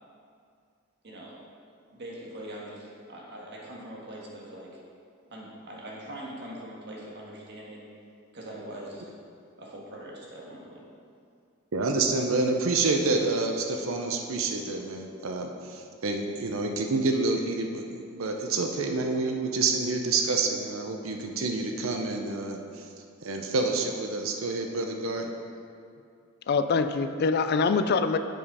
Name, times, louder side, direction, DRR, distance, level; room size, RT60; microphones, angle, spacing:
voice 1, 1.0-1.4 1.9-4.8 5.2-7.9 8.3-9.1 9.6-10.8, right 1 dB, 55° right, -3 dB, 1.5 m, -42 dB
voice 2, 11.7-22.6 23.2-25.3, right 3 dB, 85° right, 3 dB, 0.7 m, -28 dB
voice 3, 26.5-28.2, left 4 dB, 50° left, 10 dB, 0.3 m, -24 dB
7.7 x 5.3 x 4.8 m, 2.3 s
head